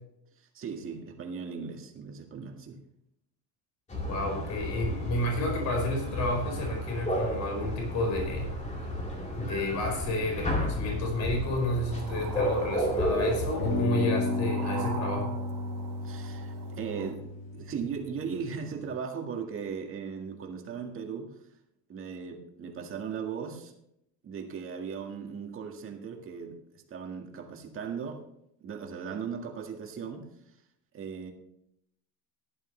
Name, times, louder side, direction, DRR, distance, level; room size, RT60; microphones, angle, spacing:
voice 1, 0.4-2.8 16.0-17.2 17.5-21.3 21.9-23.7 24.2-28.2 28.6-30.3 30.9-31.3, right 6 dB, 35° right, 2 dB, 1.8 m, -38 dB
sound 1, 3.9-13.8, equal, 15° left, 2.4 m, -32 dB
voice 2, 4.1-8.5 9.3-15.3, left 1 dB, 45° left, 1 dB, 4.9 m, -31 dB
sound 2, 11.9-13.1 13.6-18.8, left 2 dB, 85° left, 3.1 m, -34 dB
sound 3, 11.9-17.1, right 6 dB, 55° right, 2.6 m, -43 dB
15.0 x 11.5 x 3.3 m, 0.78 s
cardioid pair, 160°, 39 cm